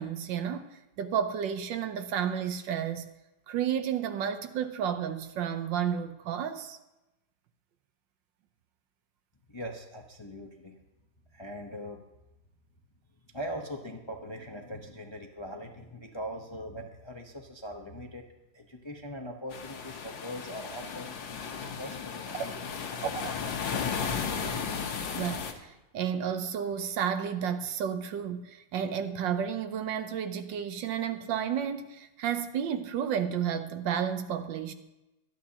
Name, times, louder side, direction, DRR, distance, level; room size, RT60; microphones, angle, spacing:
voice 1, 0.0-3.1 3.5-6.8 22.3-22.5 23.0-23.3 25.1-34.7, right 8 dB, 80° right, 1.5 m, -32 dB
voice 2, 9.5-10.7 11.3-12.0 13.3-18.2 18.5-21.2 21.6-22.7, equal, 25° left, 0.6 m, -41 dB
sound 1, 19.5-25.5, left 6 dB, 85° left, 1.9 m, -35 dB
24.0 x 9.2 x 2.9 m
omnidirectional pair, 2.0 m